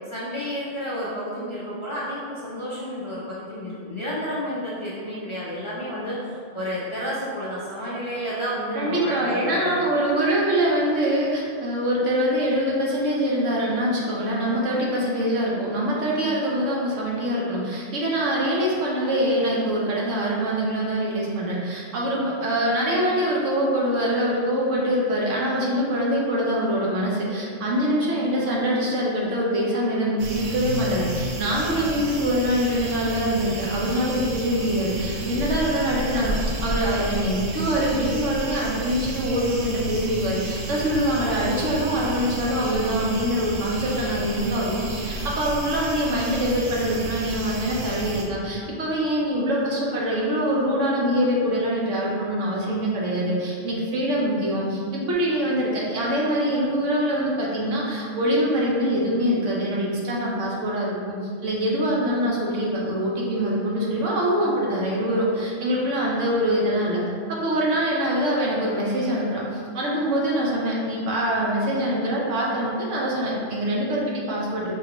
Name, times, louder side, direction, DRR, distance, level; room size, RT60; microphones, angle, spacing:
voice 1, 0.1-9.8, equal, 35° left, -8 dB, 0.5 m, -31 dB
voice 2, 8.7-61.2 61.4-67.0 67.4-74.7, equal, 75° right, -4 dB, 1.2 m, -24 dB
sound 1, 30.2-48.2, right 1 dB, 55° right, 0.5 m, -32 dB
4.6 x 3.1 x 2.9 m, 2.2 s
omnidirectional pair, 1.3 m